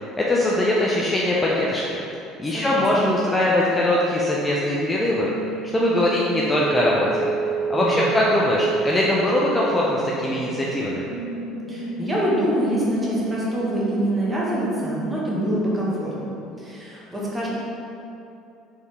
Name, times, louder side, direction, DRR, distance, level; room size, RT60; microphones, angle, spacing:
voice 1, 0.0-2.0 2.4-5.3 5.7-7.3 7.7-11.0, left 1 dB, 15° left, -5 dB, 0.5 m, -21 dB
voice 2, 2.4-3.1 7.7-8.1 11.7-17.5, equal, 15° right, -6 dB, 1.3 m, -26 dB
sound 1, 5.1-15.1, right 5 dB, 85° right, 0.4 m, -30 dB
4.4 x 3.4 x 3.3 m, 2.7 s
supercardioid pair, 100°, 0 cm